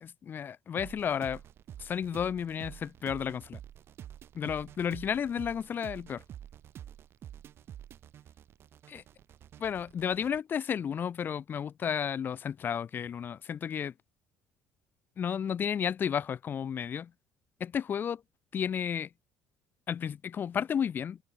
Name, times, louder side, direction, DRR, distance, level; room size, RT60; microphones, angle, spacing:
voice 1, 0.0-1.4 1.8-3.6 4.3-6.2 8.9-9.0 9.6-13.9 15.2-17.1 17.6-18.2 18.5-19.1 19.9-21.2, left 8 dB, 40° left, 0.9 m, -32 dB
sound 1, 0.8-10.4, right 10 dB, 55° right, 1.6 m, -48 dB
open air
supercardioid pair, 80°, 5 cm